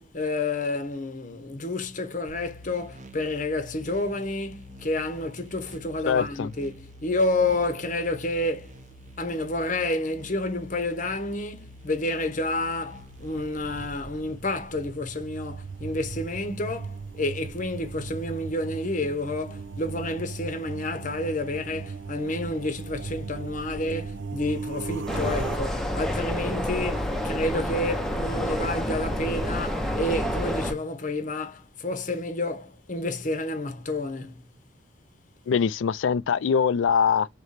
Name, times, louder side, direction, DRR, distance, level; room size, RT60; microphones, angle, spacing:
voice 1, 0.0-8.7 9.2-34.4, left 2 dB, 45° left, 0.8 m, -30 dB
sound 1, 2.3-13.9, equal, 40° right, 0.7 m, -47 dB
voice 2, 6.1-6.5 35.5-37.3, left 6 dB, 80° left, 0.4 m, -23 dB
sound 2, 12.9-25.6, right 4 dB, 75° right, 0.5 m, -38 dB
sound 3, 25.1-30.7, equal, ahead, 0.7 m, -28 dB
4.0 x 3.0 x 3.2 m
head